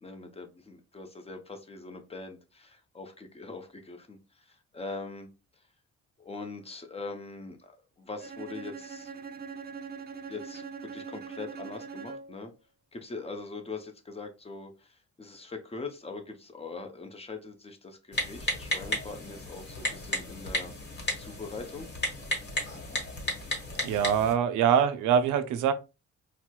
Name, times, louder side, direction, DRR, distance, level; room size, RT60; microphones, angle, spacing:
voice 1, 0.0-5.3 6.2-7.7 8.0-9.1 10.3-10.6 10.9-12.5 12.9-20.7 21.2-21.9, left 3 dB, 20° left, 0.6 m, -42 dB
Bowed string instrument, 8.2-12.5, right 5 dB, 35° right, 0.4 m, -42 dB
Typing, 18.1-24.3, equal, 35° left, 1.1 m, -34 dB
voice 2, 23.8-25.7, right 8 dB, 85° right, 0.5 m, -24 dB
4.2 x 2.1 x 2.2 m
cardioid pair, 90°, 30 cm